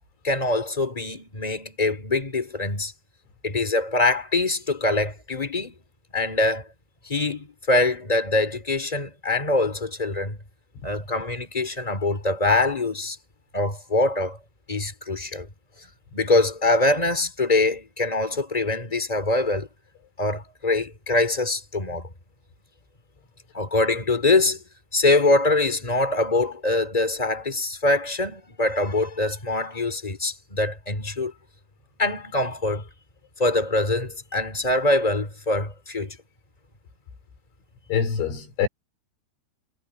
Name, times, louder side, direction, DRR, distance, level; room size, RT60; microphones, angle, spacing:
voice 1, 0.2-2.9 3.4-5.7 6.1-6.7 7.1-10.4 10.8-13.2 13.5-14.4 14.7-15.5 16.1-19.7 20.2-22.1 23.5-24.6 24.9-31.3 32.0-32.8 33.4-36.2, left 2 dB, 10° left, 1.9 m, -24 dB
voice 2, 37.9-38.7, left 7 dB, 75° left, 7.6 m, -24 dB
omnidirectional pair, 5.4 m